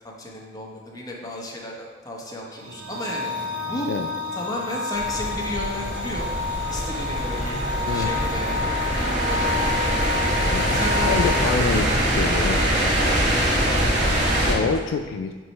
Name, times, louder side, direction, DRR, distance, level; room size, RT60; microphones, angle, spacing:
voice 1, 0.0-3.9 4.3-6.3 6.7-7.6 7.9-10.4 10.7-11.8 13.0-13.6 14.4-14.7, left 1 dB, 20° left, -2 dB, 0.9 m, -34 dB
sound 1, 2.3-11.4, left 4 dB, 85° right, 1.3 m, -30 dB
sound 2, 4.9-14.5, right 1 dB, 65° right, 1.6 m, -23 dB
voice 2, 10.5-12.7 14.5-15.3, left 5 dB, 85° left, 6 dB, 0.3 m, -26 dB
4.7 x 4.1 x 5.3 m, 1.4 s
head